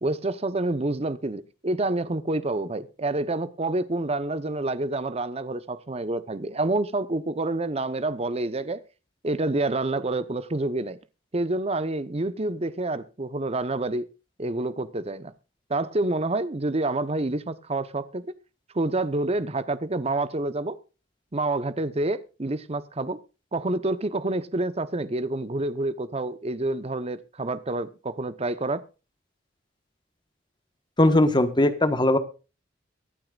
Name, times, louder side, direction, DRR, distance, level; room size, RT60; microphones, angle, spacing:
voice 1, 0.0-8.8 9.2-11.0 11.3-14.1 14.4-15.3 15.7-18.3 18.7-20.8 21.3-23.2 23.5-28.8, right 2 dB, 35° right, 0.9 m, -28 dB
voice 2, 31.0-32.2, left 1 dB, 25° left, 1.3 m, -19 dB
23.5 x 8.5 x 2.4 m
head